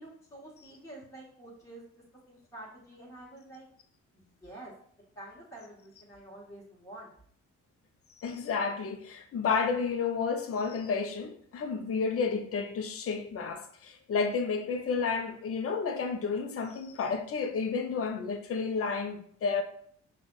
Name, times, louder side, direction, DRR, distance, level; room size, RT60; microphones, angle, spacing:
voice 1, 0.0-1.8 2.3-3.7 4.1-4.7 5.1-7.1, right 1 dB, 10° left, 1.5 m, -48 dB
voice 2, 8.2-19.6, left 5 dB, 50° left, 0.7 m, -31 dB
5.5 x 2.5 x 3.9 m
cardioid pair, 90°, 30 cm